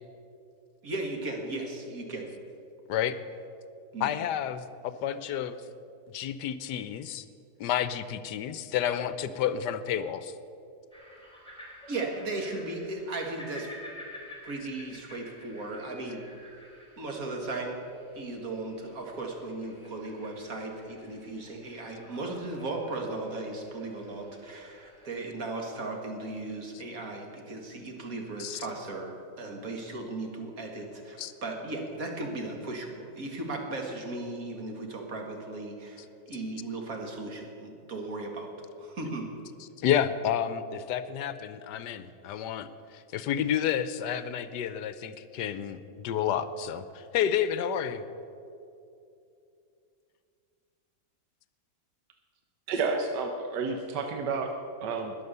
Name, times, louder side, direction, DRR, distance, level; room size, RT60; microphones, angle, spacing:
voice 1, 0.8-2.3 3.9-4.2 11.9-13.7 14.4-16.2 17.0-17.8 18.1-38.5 38.8-39.3, right 2 dB, 50° right, 2 dB, 2.2 m, -36 dB
voice 2, 4.0-5.6 6.1-7.2 7.6-10.3 28.4-28.6 31.2-31.3 39.8-48.0, left 9 dB, 75° left, 13 dB, 1.2 m, -30 dB
sound 1, 10.9-25.2, left 1 dB, 5° left, 2.9 m, -51 dB
voice 3, 52.7-54.5 54.8-55.1, right 4 dB, 70° right, 4 dB, 1.5 m, -30 dB
20.5 x 7.1 x 6.7 m, 2.6 s
omnidirectional pair, 1.9 m